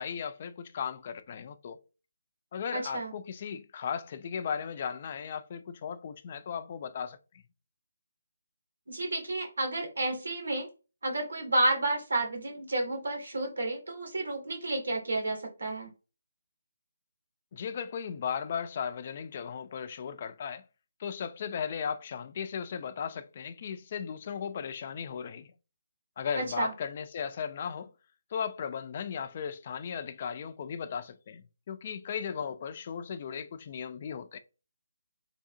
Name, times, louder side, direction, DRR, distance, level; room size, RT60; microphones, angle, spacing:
voice 1, 0.0-1.8 2.5-7.2 17.5-20.6 21.0-25.5 26.2-27.9 28.3-34.4, left 7 dB, 30° left, 0.4 m, -36 dB
voice 2, 2.7-3.1 8.9-10.7 11.0-15.9 26.3-26.7, right 2 dB, 85° right, 2.2 m, -31 dB
4.9 x 3.5 x 2.7 m
hypercardioid pair, 175°, 0 cm